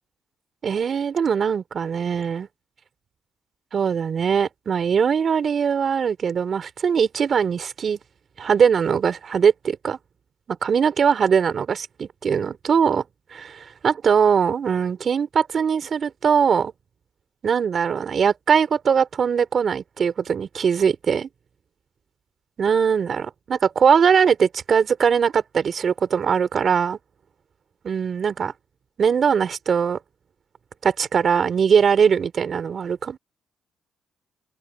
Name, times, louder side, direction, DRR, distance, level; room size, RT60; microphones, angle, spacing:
voice 1, 0.6-2.5 3.7-8.0 8.4-10.0 10.5-13.0 13.3-16.7 17.4-21.3 22.6-27.0 27.8-28.5 29.0-30.0 30.8-33.2, right 7 dB, 50° right, 4.5 m, -21 dB
open air
cardioid pair, 90°, 0 cm